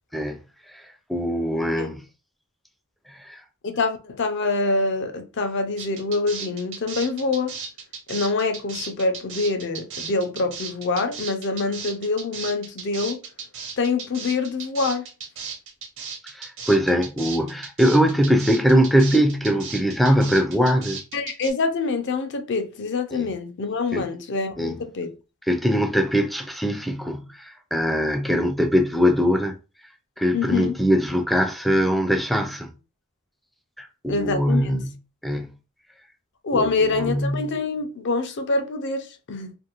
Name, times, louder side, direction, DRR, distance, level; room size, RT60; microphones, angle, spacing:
voice 1, 1.1-2.0 3.1-3.4 16.3-21.0 23.1-23.3 23.9-24.0 24.6-24.8 25.5-29.5 30.2-32.7 33.8-35.0 35.2-35.5 36.5-36.7 37.0-37.5, equal, ahead, 0.3 m, -22 dB
voice 2, 3.6-7.6 8.1-13.2 13.8-15.1 21.1-25.1 30.3-30.8 34.1-34.8 36.4-39.6, left 3 dB, 55° left, 0.5 m, -25 dB
sound 1, 5.8-21.5, right 6 dB, 60° right, 0.8 m, -35 dB
2.6 x 2.5 x 2.9 m
head